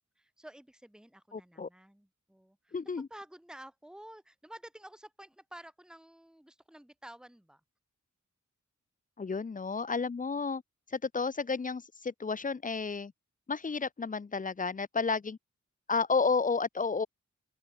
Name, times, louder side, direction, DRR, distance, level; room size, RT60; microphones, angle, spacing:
voice 1, 0.2-2.8 3.1-7.6, right 1 dB, ahead, 1.8 m, -51 dB
voice 2, 1.3-1.7 2.7-3.1 9.2-10.6 10.9-13.1 13.5-15.4 15.9-17.1, left 4 dB, 25° left, 0.5 m, -31 dB
open air
wide cardioid pair, 95°, 30 cm